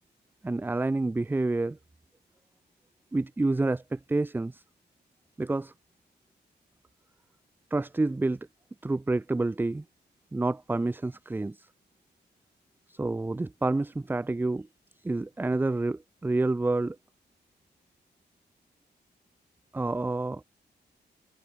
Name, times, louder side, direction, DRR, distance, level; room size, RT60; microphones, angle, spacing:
voice 1, 0.4-1.8 3.1-4.6 5.4-5.7 7.7-8.4 8.8-9.8 10.3-11.7 12.9-14.7 15.0-17.0 19.7-20.4, right 2 dB, 10° right, 0.5 m, -28 dB
wide cardioid pair, 165°, 18 cm